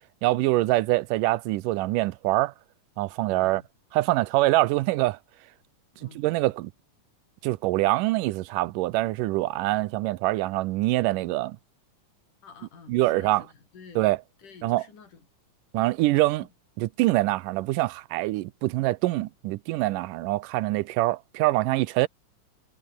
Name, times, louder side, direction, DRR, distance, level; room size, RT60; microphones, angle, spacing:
voice 1, 0.2-2.5 3.0-3.6 3.9-5.2 6.2-6.7 7.4-11.6 12.9-13.4 14.0-14.2 14.6-14.8 15.7-16.5 16.8-22.1, right 18 dB, 85° right, 2.3 m, -24 dB
voice 2, 3.3-3.7 5.9-6.2 12.4-14.1 14.4-15.3 16.4-16.5, left 5 dB, 70° left, 6.3 m, -50 dB
omnidirectional pair, 3.7 m